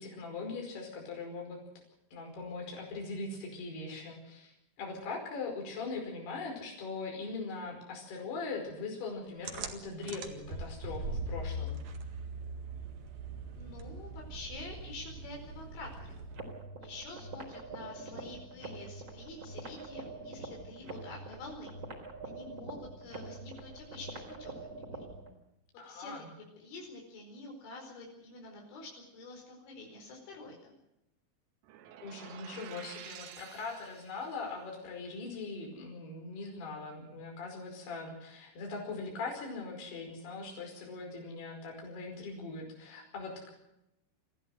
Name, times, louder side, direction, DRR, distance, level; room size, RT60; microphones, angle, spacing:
voice 1, 0.0-1.6 2.1-11.8 25.8-26.3 32.0-43.5, left 3 dB, 55° left, 1 dB, 6.9 m, -41 dB
sound 1, 9.4-16.6, right 2 dB, 50° right, 2.3 m, -41 dB
voice 2, 13.5-16.2 16.8-21.8 22.2-25.0 25.9-26.1 26.4-30.7, left 2 dB, 75° left, 0 dB, 7.1 m, -47 dB
sound 2, 16.3-25.3, right 3 dB, 30° right, 3.9 m, -45 dB
sound 3, 31.6-34.5, right 11 dB, 85° right, 4.0 m, -50 dB
25.0 x 15.5 x 7.9 m, 0.86 s
omnidirectional pair, 5.6 m